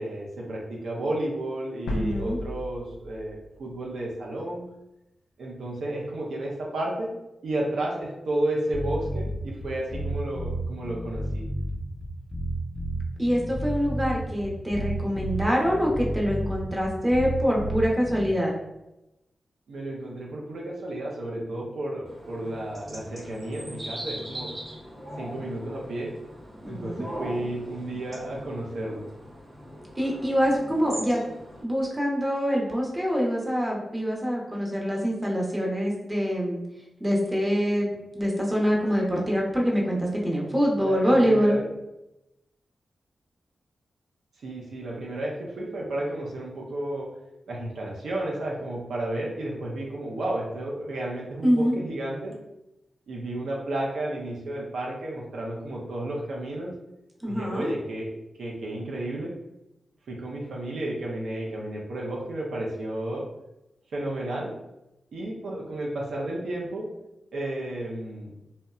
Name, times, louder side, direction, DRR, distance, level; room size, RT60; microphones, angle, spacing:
voice 1, 0.0-4.7 5.4-7.1 7.4-11.4 19.7-24.5 25.2-26.1 26.7-29.0 40.8-41.7 44.4-47.1 47.5-52.3 53.1-56.7 57.3-59.3 60.1-63.3 63.9-64.5 65.1-66.9 67.3-68.3, right 1 dB, 85° right, -3 dB, 0.5 m, -32 dB
sound 1, 1.9-4.4, left 1 dB, 90° left, 0.3 m, -35 dB
voice 2, 1.9-2.4 13.2-18.5 26.6-27.0 30.0-31.2 31.6-36.6 37.0-37.9 38.1-41.6 51.4-51.8 57.2-57.7, equal, 25° right, -2 dB, 0.8 m, -25 dB
sound 2, 8.7-18.3, right 1 dB, 25° left, 0.5 m, -31 dB
sound 3, 22.1-31.6, equal, 50° right, 1.0 m, -40 dB
2.8 x 2.1 x 2.3 m, 0.92 s
cardioid pair, 50°, 0 cm